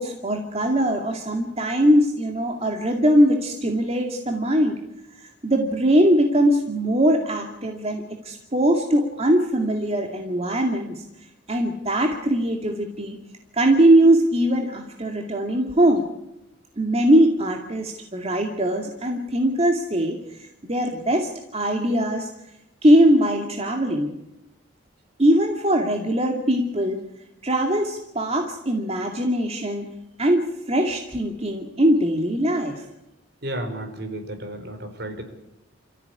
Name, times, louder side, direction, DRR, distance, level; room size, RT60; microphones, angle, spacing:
voice 1, 0.0-4.7 5.1-11.0 11.5-13.2 13.5-16.0 16.8-20.2 20.6-22.3 22.8-24.1 25.2-27.0 27.4-29.9 30.2-32.8, right 1 dB, 35° right, 2 dB, 2.4 m, -21 dB
voice 2, 33.4-35.2, right 1 dB, 60° right, 6 dB, 4.8 m, -32 dB
28.5 x 15.0 x 9.8 m, 0.90 s
head